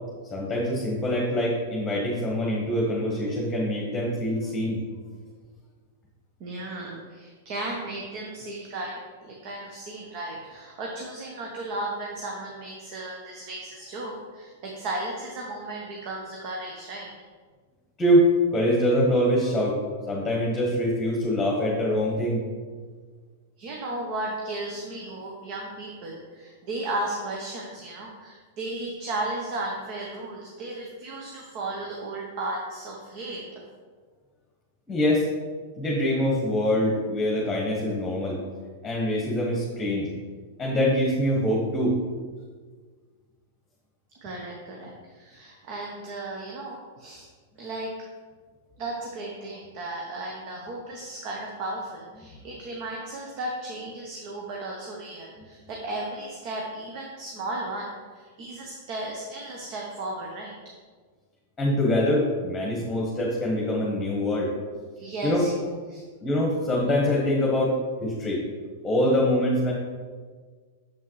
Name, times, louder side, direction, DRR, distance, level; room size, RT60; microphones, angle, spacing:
voice 1, 0.3-4.8 18.0-19.8 20.1-22.4 34.9-35.3 35.8-38.4 38.8-40.1 40.6-41.9 61.6-64.5 65.2-65.4 66.2-68.4 68.8-69.7, left 1 dB, 15° left, -3 dB, 1.3 m, -24 dB
voice 2, 6.4-17.1 23.6-33.6 44.2-47.3 47.6-47.9 48.8-60.6 65.0-66.0, right 2 dB, 50° right, -1 dB, 1.0 m, -35 dB
6.9 x 5.5 x 3.2 m, 1.5 s
hypercardioid pair, 115°, 0 cm